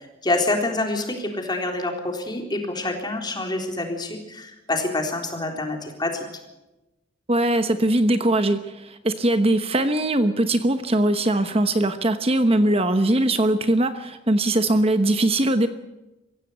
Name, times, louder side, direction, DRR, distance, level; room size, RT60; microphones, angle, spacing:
voice 1, 0.2-6.2, left 2 dB, 25° left, 3 dB, 3.8 m, -26 dB
voice 2, 7.3-15.7, right 1 dB, 30° right, 9 dB, 1.0 m, -21 dB
24.5 x 16.0 x 8.0 m, 1.0 s
head